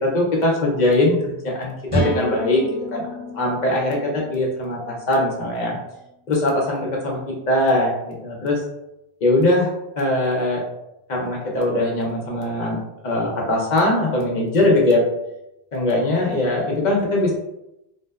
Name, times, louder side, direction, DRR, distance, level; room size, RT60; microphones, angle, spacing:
voice 1, 0.0-2.6 2.9-3.0 3.3-5.8 6.3-8.6 9.2-9.7 10.0-10.6 11.1-12.8 13.0-15.0 15.7-17.3, left 1 dB, 50° left, -2 dB, 0.6 m, -21 dB
sound 1, 1.9-5.7, equal, 30° right, 0.9 m, -29 dB
2.6 x 2.1 x 2.2 m, 0.88 s
omnidirectional pair, 1.1 m